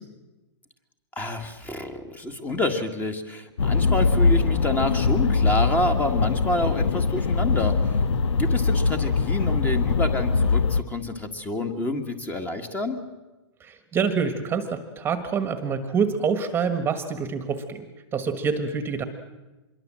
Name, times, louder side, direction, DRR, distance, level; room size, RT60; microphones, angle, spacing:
voice 1, 1.2-8.0 8.3-13.0, left 2 dB, 10° left, 6 dB, 1.7 m, -28 dB
sound 1, 3.6-10.8, left 4 dB, 75° left, 1.2 m, -22 dB
voice 2, 13.6-17.8 18.1-19.0, right 6 dB, 15° right, 9 dB, 1.5 m, -26 dB
25.5 x 22.0 x 7.6 m, 1.1 s
hypercardioid pair, 145°, 15 cm